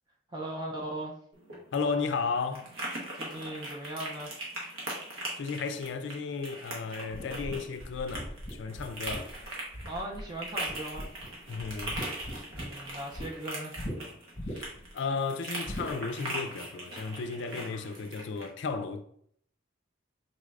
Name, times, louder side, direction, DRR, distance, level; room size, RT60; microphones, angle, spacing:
voice 1, 0.3-1.2 3.1-4.3 9.8-11.1 12.5-13.7, right 1 dB, 20° right, 0.4 m, -38 dB
sound 1, 1.3-18.5, right 1 dB, 85° right, 1.2 m, -40 dB
voice 2, 1.7-2.8 5.4-9.3 11.5-12.0 12.3-12.4 14.5-14.7 14.9-19.0, left 4 dB, 60° left, 0.4 m, -34 dB
sound 2, 7.1-10.3 10.7-11.3 11.6-13.3 13.8-13.9 14.3-14.9 15.6-15.9, equal, 30° left, 0.8 m, -39 dB
4.0 x 2.4 x 3.2 m
head